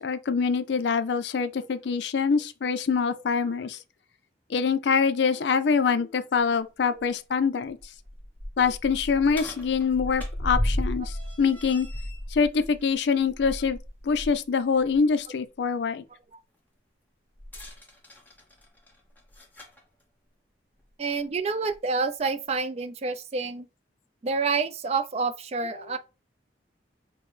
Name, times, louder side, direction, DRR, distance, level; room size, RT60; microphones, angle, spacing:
voice 1, 0.0-3.8 4.5-7.8 8.6-11.9 12.3-13.8 14.0-16.0, left 5 dB, 70° left, 0.4 m, -25 dB
sound 1, 6.4-6.5 7.0-7.1 7.7-14.4 14.8-15.0 17.4-19.8 20.8-20.9 21.7-21.8, equal, 10° left, 0.8 m, -34 dB
voice 2, 21.0-23.7 24.2-26.0, right 4 dB, 35° right, 0.3 m, -28 dB
5.9 x 2.0 x 3.1 m
head